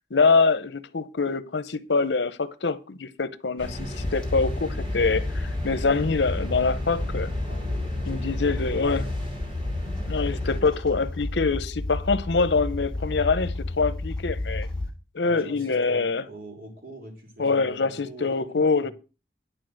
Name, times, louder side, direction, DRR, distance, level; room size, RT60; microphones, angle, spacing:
voice 1, 0.1-7.3 8.1-9.0 9.9-14.7 15.1-16.2 17.4-18.9, left 4 dB, 85° left, 0.8 m, -25 dB
sound 1, 3.6-10.6, left 1 dB, 30° right, 3.9 m, -34 dB
sound 2, 3.9-14.9, left 2 dB, 5° left, 2.2 m, -31 dB
voice 2, 7.4-9.2 15.2-18.9, right 1 dB, 50° right, 3.8 m, -43 dB
11.0 x 5.0 x 7.7 m
head